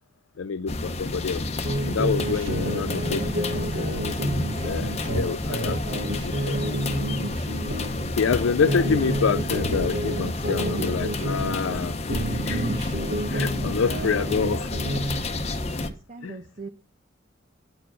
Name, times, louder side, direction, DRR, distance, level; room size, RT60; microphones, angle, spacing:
voice 1, 0.4-1.4 1.9-3.6 4.6-6.8 8.2-12.8 13.3-14.7 16.2-16.4, left 6 dB, 85° left, 0.5 m, -27 dB
sound 1, 0.7-15.9, left 2 dB, 35° left, 0.8 m, -30 dB
sound 2, 1.6-8.1 8.5-11.8 12.1-15.2, right 1 dB, 70° right, 1.6 m, -30 dB
voice 2, 15.9-16.7, right 3 dB, 35° right, 0.9 m, -41 dB
9.8 x 4.7 x 6.3 m
head